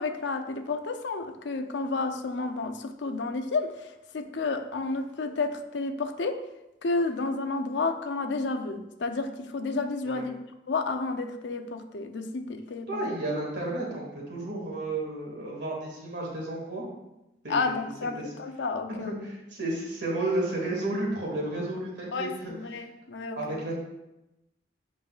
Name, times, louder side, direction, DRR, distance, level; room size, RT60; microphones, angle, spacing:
voice 1, 0.0-6.4 6.8-10.4 10.7-13.0 17.5-19.1 22.1-23.6, left 3 dB, 75° left, 7 dB, 0.6 m, -31 dB
voice 2, 12.9-16.9 17.4-17.8 18.2-18.3 18.9-22.5 23.4-23.8, right 2 dB, 75° right, -3 dB, 2.0 m, -32 dB
7.7 x 5.3 x 2.4 m, 0.93 s
head